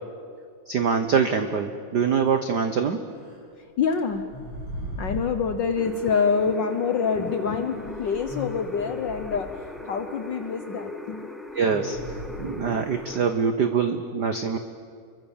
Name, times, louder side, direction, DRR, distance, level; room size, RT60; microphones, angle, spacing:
voice 1, 0.7-3.0 11.5-12.0 12.4-14.6, right 6 dB, 85° right, 8 dB, 0.9 m, -24 dB
sound 1, 3.2-3.4 4.1-5.4 6.6-6.7 7.8-9.6 11.7-13.2, equal, 45° right, 7.4 m, -38 dB
voice 2, 3.8-4.2 5.0-11.3 12.3-12.7, left 6 dB, 85° left, 8 dB, 1.0 m, -26 dB
sound 2, 5.7-13.2, left 2 dB, ahead, 1.4 m, -40 dB
29.0 x 23.5 x 7.3 m, 2.2 s
omnidirectional pair, 3.5 m